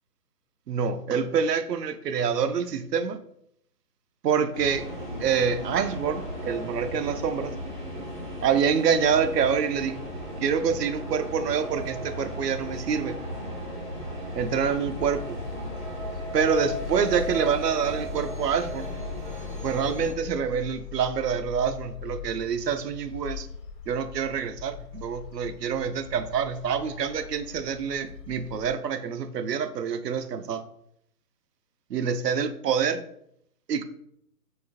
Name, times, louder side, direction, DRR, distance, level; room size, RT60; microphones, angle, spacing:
voice 1, 0.7-3.2 4.2-4.9 5.2-7.5 8.4-10.0 10.4-13.2 14.3-15.4 16.3-18.9 19.6-23.5 23.9-30.6 31.9-33.0 33.7-33.8, right 7 dB, 80° right, 10 dB, 0.5 m, -26 dB
sound 1, 4.5-20.1, equal, 30° right, 0.6 m, -35 dB
sound 2, 14.3-28.8, left 8 dB, 85° left, 0.7 m, -41 dB
3.9 x 2.4 x 2.6 m, 0.73 s
hypercardioid pair, 170°, 48 cm